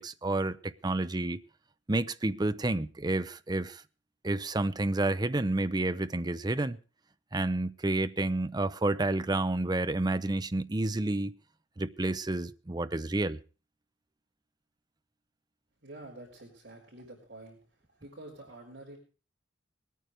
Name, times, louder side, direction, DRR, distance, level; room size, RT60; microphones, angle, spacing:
voice 1, 0.0-1.4 1.9-3.8 4.2-6.8 7.3-11.3 11.8-13.4, right 2 dB, 20° right, 0.6 m, -30 dB
voice 2, 15.8-17.6 17.9-19.0, right 2 dB, 60° right, 4.7 m, -48 dB
20.5 x 9.4 x 4.9 m
head